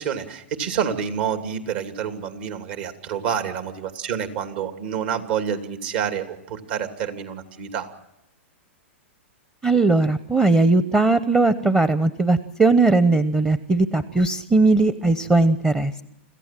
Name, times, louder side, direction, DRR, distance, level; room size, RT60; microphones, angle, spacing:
voice 1, 0.0-7.9, right 8 dB, 55° right, 7 dB, 2.7 m, -28 dB
voice 2, 9.6-16.0, right 3 dB, 10° right, 13 dB, 0.9 m, -19 dB
26.0 x 15.0 x 7.5 m, 0.86 s
hypercardioid pair, 115°, 7 cm